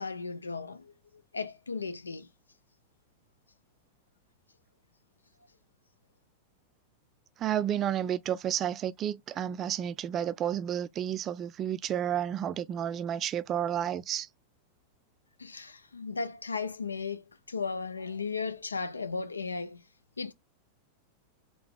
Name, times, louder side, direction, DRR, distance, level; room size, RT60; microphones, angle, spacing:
voice 1, 0.0-2.3 15.4-19.8 20.2-20.3, left 4 dB, 75° left, 0.5 m, -36 dB
voice 2, 7.4-14.3, right 10 dB, 30° right, 0.3 m, -31 dB
3.8 x 3.0 x 3.6 m
figure-of-eight pair, 90°, 0 cm